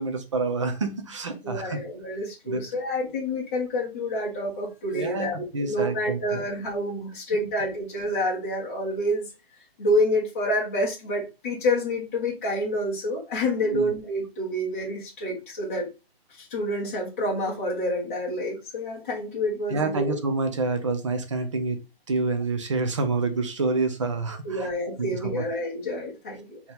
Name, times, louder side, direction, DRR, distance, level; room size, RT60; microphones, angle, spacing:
voice 1, 0.0-1.8 2.5-2.6 4.9-6.4 7.4-7.5 13.6-13.9 19.7-21.8 22.1-24.7 25.0-25.4, right 3 dB, 30° right, 7 dB, 0.6 m, -28 dB
voice 2, 1.4-9.3 9.8-15.9 16.4-20.2 24.4-26.6, left 1 dB, 15° left, -5 dB, 0.7 m, -28 dB
4.1 x 2.9 x 3.5 m, 0.27 s
hypercardioid pair, 165°, 31 cm